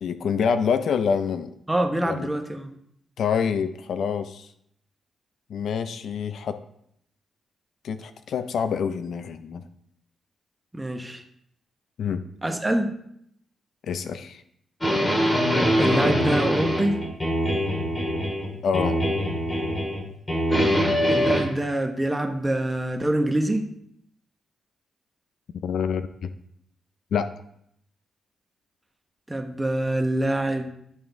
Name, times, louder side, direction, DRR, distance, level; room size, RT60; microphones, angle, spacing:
voice 1, 0.0-1.5 2.1-2.3 3.2-4.5 5.5-6.6 7.8-9.6 12.0-12.2 13.8-14.4 18.6-19.0 25.6-26.3 27.1-27.3, left 6 dB, 75° left, 10 dB, 0.4 m, -26 dB
voice 2, 1.7-2.7 10.7-11.2 12.4-12.9 15.8-17.1 21.0-23.7 29.3-30.7, right 1 dB, 15° right, 5 dB, 0.9 m, -25 dB
sound 1, 14.8-18.5 18.7-20.0 20.3-21.4, equal, 20° left, 1.8 m, -23 dB
11.0 x 3.8 x 3.4 m, 0.71 s
cardioid pair, 85°, 0 cm